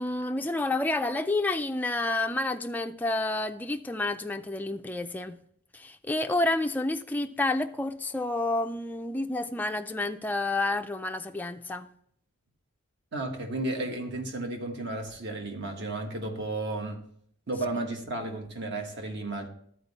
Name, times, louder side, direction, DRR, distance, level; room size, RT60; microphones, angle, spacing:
voice 1, 0.0-5.4 5.7-11.9, left 2 dB, 10° left, 0.3 m, -29 dB
voice 2, 13.1-17.0 17.5-19.5, right 2 dB, 55° right, 1.3 m, -33 dB
12.5 x 4.4 x 4.0 m
head